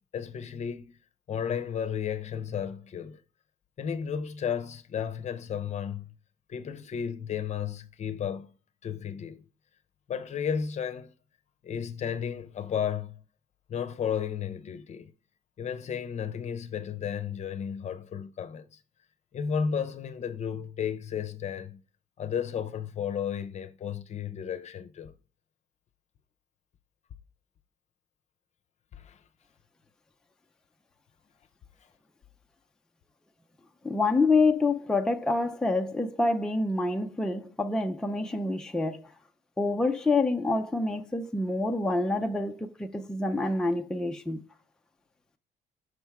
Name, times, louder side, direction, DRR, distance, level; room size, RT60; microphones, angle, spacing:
voice 1, 0.1-1.0 1.3-3.2 3.8-6.1 6.5-8.5 8.8-9.4 10.1-11.1 11.6-13.2 13.7-15.1 15.6-18.8 19.3-21.8 22.2-25.1 28.9-29.2, left 7 dB, 40° left, 0.8 m, -33 dB
voice 2, 33.8-39.1 39.6-44.4, left 3 dB, 5° left, 0.6 m, -27 dB
6.4 x 4.5 x 3.5 m
cardioid pair, 110°, 17 cm